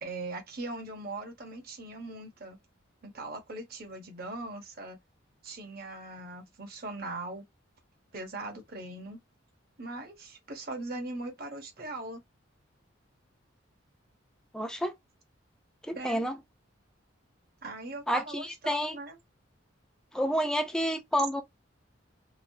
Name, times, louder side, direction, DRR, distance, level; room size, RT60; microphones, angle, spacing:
voice 1, 0.0-2.6 3.0-5.0 5.4-7.4 8.1-9.2 9.8-12.2 15.9-16.2 17.6-19.2, right 2 dB, 50° right, 0.9 m, -40 dB
voice 2, 14.5-14.9 15.8-16.4 18.1-19.0 20.1-21.4, equal, 5° left, 0.5 m, -29 dB
3.1 x 2.0 x 2.7 m
head